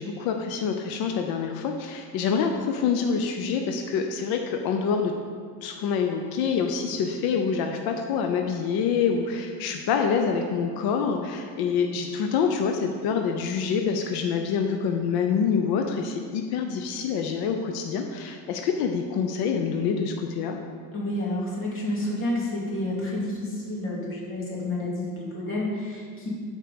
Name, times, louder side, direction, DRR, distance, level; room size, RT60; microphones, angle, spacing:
voice 1, 0.0-5.1 5.6-20.6, left 6 dB, 85° left, 4 dB, 0.8 m, -26 dB
voice 2, 20.9-26.3, left 1 dB, 35° left, -4 dB, 2.4 m, -30 dB
12.5 x 4.6 x 5.2 m, 2.1 s
cardioid pair, 160°, 36 cm